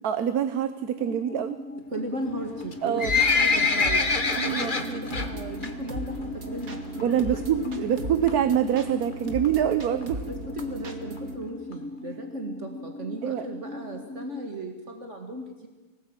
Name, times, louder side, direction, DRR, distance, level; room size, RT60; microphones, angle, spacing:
voice 1, 0.0-1.6 2.8-3.1 4.4-5.0 7.0-10.2 13.2-13.5, right 9 dB, 80° right, 11 dB, 1.4 m, -25 dB
sound 1, 1.0-14.5, left 2 dB, 10° left, 0.9 m, -39 dB
voice 2, 1.9-3.0 3.3-4.1 4.4-8.0 8.2-8.4 10.3-15.7, right 1 dB, 50° right, 3 dB, 2.4 m, -36 dB
Livestock farm animals working animals, 2.6-5.3 5.6-5.9 6.2-6.3 7.0-7.1 7.4-7.5 7.6-7.7 8.3-8.5 9.1-9.2 9.4-9.5 9.7-9.8 10.0-10.1 10.6-10.7 11.2-11.3 11.7-11.8, left 4 dB, 35° left, 1.7 m, -24 dB
sound 2, 3.0-11.4, right 2 dB, 65° right, 2.7 m, -38 dB
24.5 x 18.5 x 8.9 m, 1.2 s
omnidirectional pair, 1.6 m